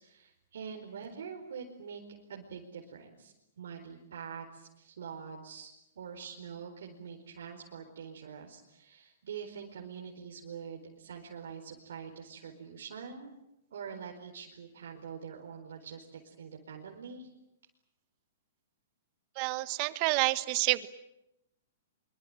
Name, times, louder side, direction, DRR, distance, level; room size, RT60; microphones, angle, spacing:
voice 1, 0.0-2.0 2.3-5.7 6.0-13.3 13.7-17.3, right 6 dB, 80° right, 0 dB, 4.7 m, -45 dB
voice 2, 19.3-20.9, right 21 dB, 40° right, 14 dB, 1.4 m, -28 dB
25.0 x 24.5 x 9.1 m, 0.88 s
hypercardioid pair, 150°, 0 cm